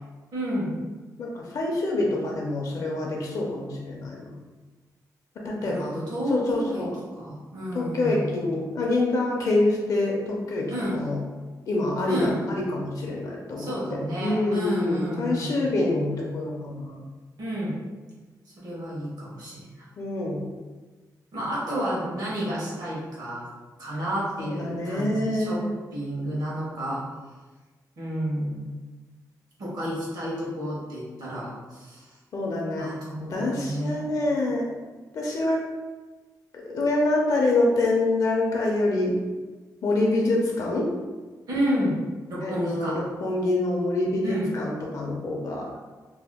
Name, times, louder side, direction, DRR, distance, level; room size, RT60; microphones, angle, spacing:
voice 1, 0.3-0.8 5.6-6.9 7.1-8.5 10.7-11.0 12.1-12.4 13.6-15.6 17.4-17.8 18.5-19.9 21.3-23.5 23.8-25.6 25.9-27.0 28.0-28.6 29.6-32.1 32.8-34.1 41.5-42.0 42.3-43.0 44.2-44.5, equal, 70° right, -6 dB, 1.1 m, -30 dB
voice 2, 1.2-4.3 5.4-5.9 6.3-6.9 7.7-11.2 11.7-13.7 14.2-17.0 20.0-20.4 24.4-25.7 32.3-32.9 33.3-34.7 35.1-35.6 36.7-39.1 39.8-40.9 42.4-45.7, left 2 dB, 55° left, -2 dB, 0.5 m, -26 dB
2.7 x 2.1 x 3.4 m, 1.3 s
wide cardioid pair, 170°, 7 cm